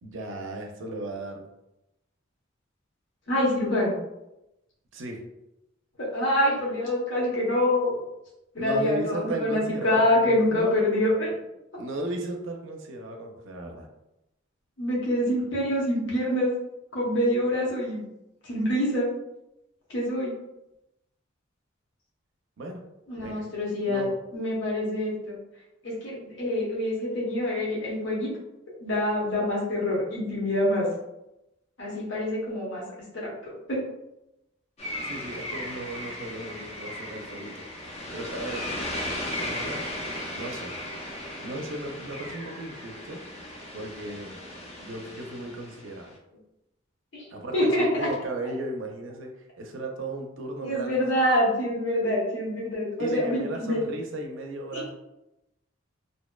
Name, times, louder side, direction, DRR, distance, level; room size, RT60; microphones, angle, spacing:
voice 1, 0.0-1.5 4.9-5.2 8.6-10.9 11.8-13.9 22.6-22.8 23.2-23.5 23.9-24.2 35.0-37.7 38.1-38.7 39.4-39.9 40.3-40.8 41.4-43.2 43.7-44.4 44.8-46.1 47.3-49.3 49.6-51.0 53.0-54.9, right 1 dB, 70° right, 3 dB, 0.4 m, -35 dB
voice 2, 3.3-4.0 6.0-8.0 8.5-11.4 14.8-16.5 16.9-18.0 18.4-19.1 19.9-20.3 23.1-25.4 25.8-28.3 28.8-30.9 31.8-32.8 33.1-33.8 47.1-47.3 47.5-48.1 50.6-53.8 54.7-54.8, left 1 dB, 65° left, -5 dB, 0.7 m, -26 dB
sound 1, 34.8-46.1, left 1 dB, 30° left, 0.4 m, -36 dB
2.6 x 2.1 x 2.2 m, 0.89 s
head